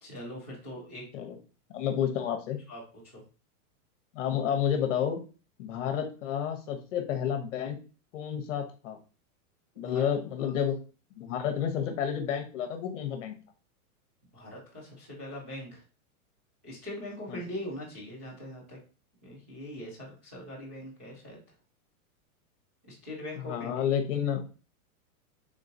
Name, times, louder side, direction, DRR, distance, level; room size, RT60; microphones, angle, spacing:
voice 1, 0.0-1.0 2.7-2.8 3.1-3.2 9.8-10.1 14.3-15.8 16.6-18.8 19.2-21.4 22.9-23.7, left 1 dB, 10° right, -9 dB, 0.3 m, -41 dB
voice 2, 1.7-2.6 4.1-5.2 5.6-7.8 8.1-9.0 9.8-10.7 11.2-13.3 17.3-17.4 23.4-24.4, left 9 dB, 55° left, 6 dB, 1.0 m, -30 dB
3.8 x 3.7 x 2.6 m, 0.35 s
supercardioid pair, 165°, 44 cm